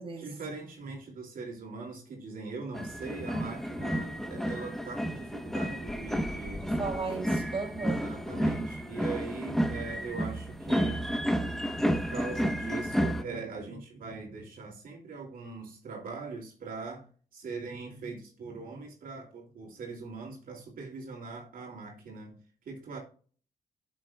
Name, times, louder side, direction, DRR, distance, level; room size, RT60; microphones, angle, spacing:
voice 1, 0.2-6.7 7.8-11.0 11.8-17.1 17.3-22.4 22.7-23.0, right 4 dB, 70° right, 2.9 m, -41 dB
sound 1, 2.7-13.2, equal, ahead, 1.1 m, -31 dB
voice 2, 6.6-8.1, right 4 dB, 40° right, 3.1 m, -35 dB
11.5 x 7.5 x 2.4 m
cardioid pair, 105°, 15 cm